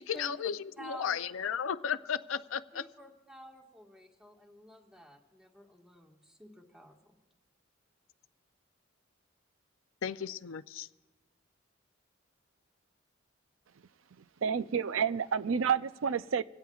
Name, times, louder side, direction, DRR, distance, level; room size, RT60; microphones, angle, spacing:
voice 1, 0.0-2.9 10.0-10.9, left 7 dB, 80° left, 0.5 m, -34 dB
voice 2, 0.8-1.5 2.7-7.2, equal, 5° right, 1.6 m, -50 dB
voice 3, 14.1-16.4, right 6 dB, 80° right, 0.5 m, -30 dB
26.0 x 17.0 x 2.4 m
head